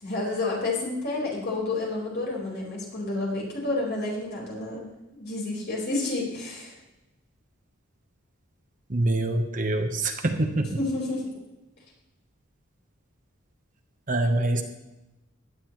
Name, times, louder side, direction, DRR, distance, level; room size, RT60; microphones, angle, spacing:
voice 1, 0.0-4.9 5.1-6.7 10.8-11.2, left 2 dB, 55° left, -3 dB, 4.7 m, -30 dB
voice 2, 8.9-10.8 14.1-14.6, right 2 dB, 40° right, 5 dB, 1.1 m, -25 dB
16.5 x 11.0 x 3.2 m, 0.98 s
head